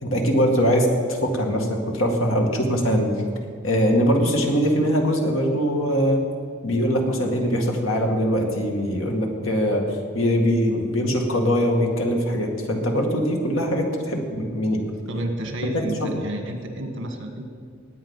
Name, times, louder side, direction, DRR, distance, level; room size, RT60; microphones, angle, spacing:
voice 1, 0.0-3.1 3.6-6.2 6.6-9.8 10.2-14.8 15.7-16.1, equal, 80° left, 2 dB, 2.1 m, -22 dB
voice 2, 15.1-17.5, right 1 dB, 65° right, 5 dB, 1.7 m, -30 dB
19.0 x 8.2 x 5.6 m, 2.2 s
head